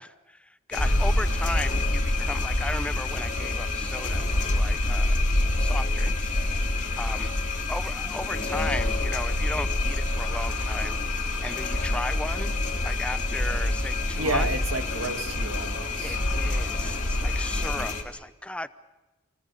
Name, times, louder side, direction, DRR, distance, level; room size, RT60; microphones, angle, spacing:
voice 1, 0.0-5.3 5.6-6.3 6.7-7.3 7.7-14.5 16.0-18.7, left 1 dB, 5° left, 13 dB, 0.7 m, -36 dB
sound 1, 0.7-18.0, left 5 dB, 35° left, 2.4 m, -32 dB
sound 2, 0.8-17.9, left 1 dB, 80° left, 3.5 m, -28 dB
voice 2, 14.2-16.2, right 2 dB, 65° right, 6 dB, 2.0 m, -31 dB
28.0 x 19.5 x 6.8 m, 1.1 s
head